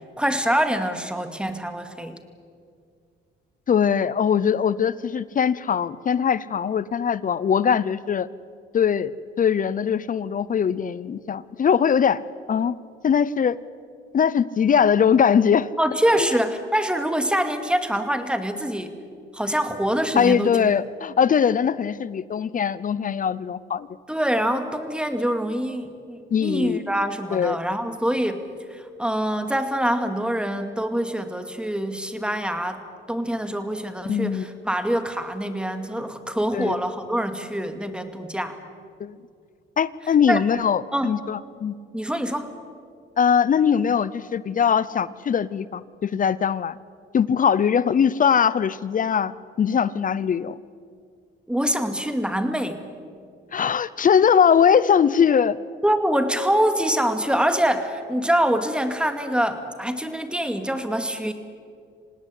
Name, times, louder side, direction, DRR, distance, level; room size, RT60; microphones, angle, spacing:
voice 1, 0.2-2.2 15.8-19.0 19.3-20.5 24.1-28.4 28.7-38.6 40.3-40.4 40.9-41.1 41.9-42.5 51.5-52.8 55.8-61.3, equal, 5° right, 8 dB, 2.3 m, -25 dB
voice 2, 3.7-8.3 8.7-9.1 9.4-12.2 12.5-12.7 13.0-13.6 14.1-15.7 16.2-16.4 20.1-23.9 26.3-26.8 27.3-27.6 34.1-34.5 36.5-36.8 39.0-39.2 39.8-41.7 43.2-46.8 47.1-49.3 49.6-50.6 53.5-55.6, left 7 dB, 45° left, 18 dB, 0.7 m, -21 dB
26.5 x 18.5 x 8.4 m, 2.2 s
cardioid pair, 90°, 20 cm